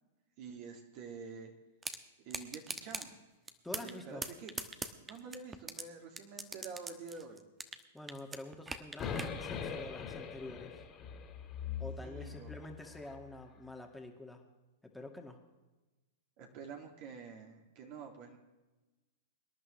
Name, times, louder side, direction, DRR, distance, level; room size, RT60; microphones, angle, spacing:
voice 1, 0.4-1.5 2.2-3.2 3.8-4.5 5.1-7.4 12.0-12.5 16.4-18.4, right 5 dB, 50° right, 2 dB, 2.2 m, -48 dB
sound 1, 1.8-2.0 2.3-3.1 3.5-4.0 4.2-5.8 6.2-7.8 8.1-9.3, right 3 dB, 15° right, 1.0 m, -40 dB
voice 2, 3.6-4.2 7.9-10.8 11.8-14.4 14.8-15.4, left 2 dB, 5° left, 2 dB, 1.9 m, -47 dB
sound 2, 9.0-13.2, left 7 dB, 30° left, 2.4 m, -42 dB
24.5 x 11.0 x 3.2 m, 1.1 s
hypercardioid pair, 110°, 0 cm